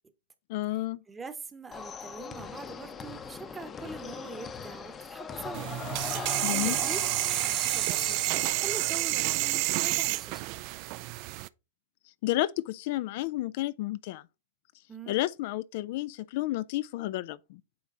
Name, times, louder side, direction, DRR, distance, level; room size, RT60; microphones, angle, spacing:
voice 1, 0.5-1.0 6.4-6.8 12.2-14.2 15.1-17.6, left 16 dB, 55° left, 0.3 m, -31 dB
voice 2, 1.1-5.7 6.5-7.0 7.3-10.5 14.9-15.2, right 4 dB, 15° right, 1.0 m, -43 dB
sound 1, 1.7-8.5, left 6 dB, 25° left, 0.7 m, -40 dB
sound 2, 5.5-11.5, right 20 dB, 50° right, 0.3 m, -29 dB
8.6 x 3.1 x 3.8 m
hypercardioid pair, 115°, 0 cm